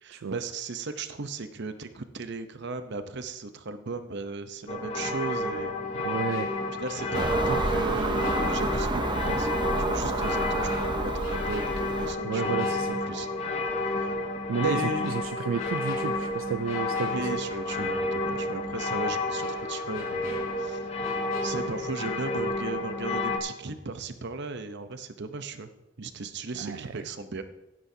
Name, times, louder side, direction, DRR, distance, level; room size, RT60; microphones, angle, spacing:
voice 1, 0.0-5.7 6.8-13.3 13.8-14.1 14.5-15.1 17.0-20.9 21.4-25.7 26.0-27.4, right 3 dB, 60° right, 9 dB, 0.8 m, -36 dB
sound 1, 4.7-23.4, left 2 dB, 35° left, 1.1 m, -30 dB
voice 2, 5.9-6.5 12.2-12.9 14.5-17.3 26.6-27.0, right 6 dB, 80° right, 10 dB, 0.4 m, -31 dB
sound 2, 6.3-9.2 9.6-9.7 10.7-13.6 13.9-14.1 15.0-18.0 18.3-18.4 19.4-22.4 22.7-22.9, left 1 dB, 90° left, 4.2 m, -46 dB
Car passing by / Engine, 7.1-12.1, right 2 dB, 25° right, 0.7 m, -29 dB
16.0 x 9.5 x 2.8 m, 0.96 s
head